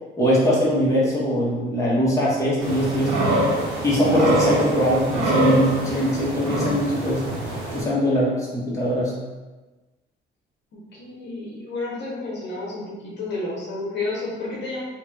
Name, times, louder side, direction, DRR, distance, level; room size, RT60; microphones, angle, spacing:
voice 1, 0.2-3.2 3.8-7.3 7.7-9.1, equal, 15° left, -7 dB, 1.0 m, -21 dB
sound 1, 2.6-7.8, right 1 dB, 90° right, 0.8 m, -24 dB
voice 2, 10.9-14.8, left 2 dB, 65° left, -4 dB, 0.8 m, -31 dB
2.9 x 2.9 x 2.3 m, 1.2 s
cardioid pair, 90°, 20 cm